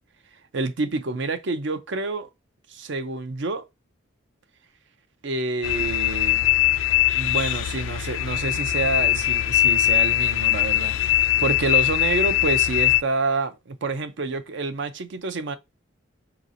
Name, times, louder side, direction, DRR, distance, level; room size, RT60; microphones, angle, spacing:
voice 1, 0.5-2.3 2.7-3.6 5.2-6.5 7.1-15.6, right 3 dB, 65° right, 0.5 m, -28 dB
sound 1, 5.6-13.0, left 15 dB, 70° left, 0.3 m, -21 dB
4.8 x 2.9 x 2.5 m
head